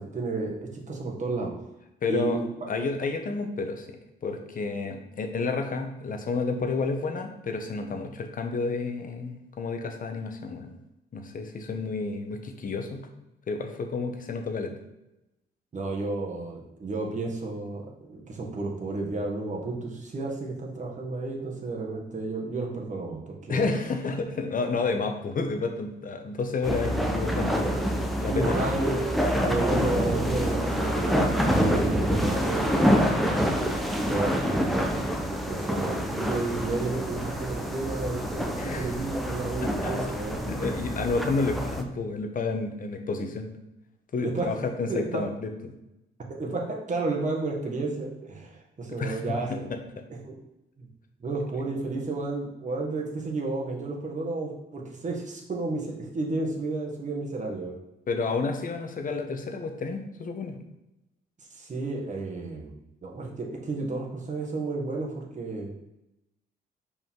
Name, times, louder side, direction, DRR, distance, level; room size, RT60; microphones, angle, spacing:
voice 1, 0.0-1.5 2.1-2.5 15.7-23.6 26.7-26.9 28.1-29.0 29.4-34.8 35.5-41.0 44.2-44.6 44.9-45.2 46.3-49.7 50.2-50.3 50.8-50.9 51.2-57.8 61.5-62.7 63.0-65.7, right 3 dB, 40° right, -1 dB, 1.6 m, -32 dB
voice 2, 2.0-2.4 2.7-4.0 4.2-10.7 11.1-13.0 13.5-14.7 23.5-27.8 28.2-28.6 29.2-29.4 38.6-38.9 39.6-39.9 40.4-43.5 44.1-45.5 48.9-49.8 58.1-60.6, left 4 dB, 45° left, 5 dB, 1.0 m, -30 dB
sound 1, 26.6-41.8, equal, ahead, 0.8 m, -27 dB
5.4 x 4.9 x 3.7 m, 0.90 s
cardioid pair, 90°, 20 cm